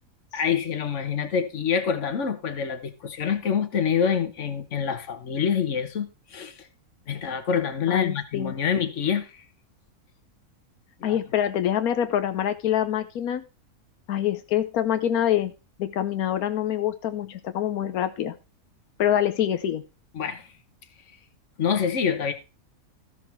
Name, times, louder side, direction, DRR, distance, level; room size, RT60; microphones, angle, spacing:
voice 1, 0.3-6.7 7.1-9.4 11.0-11.2 20.1-20.5 21.6-22.3, left 7 dB, 55° left, 1.5 m, -26 dB
voice 2, 7.9-8.5 11.0-13.4 14.1-15.5 15.8-18.3 19.0-19.8, left 10 dB, 85° left, 1.2 m, -25 dB
14.0 x 6.1 x 4.5 m
omnidirectional pair, 1.5 m